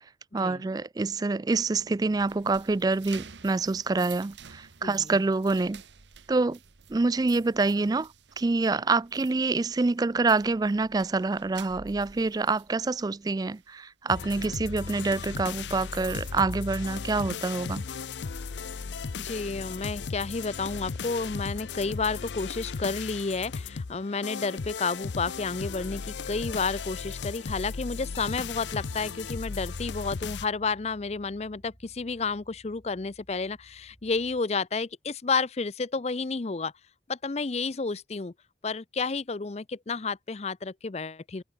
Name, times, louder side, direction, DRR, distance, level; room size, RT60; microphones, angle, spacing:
voice 1, 0.3-5.8 6.3-6.6 6.9-8.1 8.4-17.8, right 3 dB, 20° right, 0.3 m, -26 dB
sound 1, 1.6-17.5 17.8-18.1 18.6-20.2, right 7 dB, 80° right, 1.4 m, -51 dB
sound 2, 14.1-30.5, left 5 dB, 80° left, 0.6 m, -36 dB
voice 2, 19.2-36.7 37.1-38.3 38.6-41.4, left 4 dB, 35° left, 0.5 m, -31 dB
Bass guitar, 28.1-34.4, equal, 5° left, 6.4 m, -55 dB
head